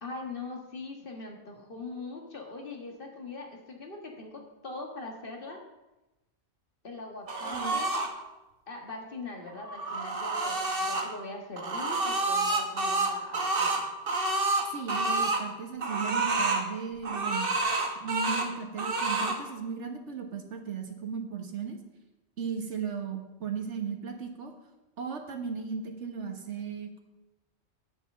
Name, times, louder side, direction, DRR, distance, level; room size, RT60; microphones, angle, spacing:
voice 1, 0.0-5.6 6.8-8.0 8.7-13.8, left 3 dB, 50° left, 1 dB, 1.8 m, -41 dB
sound 1, 7.3-8.1 9.5-11.1 11.6-15.4 15.8-16.6 17.0-18.5 18.8-19.4, right 3 dB, 50° right, 1.4 m, -28 dB
voice 2, 7.4-7.8 14.7-17.5 18.0-21.8 22.4-24.5 25.0-27.0, right 6 dB, 75° right, 4 dB, 1.5 m, -36 dB
9.7 x 5.9 x 7.2 m, 1.0 s
omnidirectional pair, 1.2 m